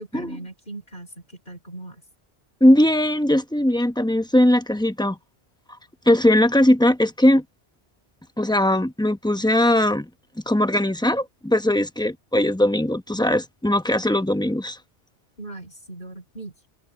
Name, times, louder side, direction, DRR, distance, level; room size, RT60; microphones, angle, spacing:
voice 1, 0.1-2.0 15.4-16.5, right 2 dB, 50° left, 3.9 m, -39 dB
voice 2, 2.6-5.2 6.1-7.4 8.4-10.1 10.5-14.8, left 1 dB, 5° left, 0.9 m, -19 dB
omnidirectional pair, 1.1 m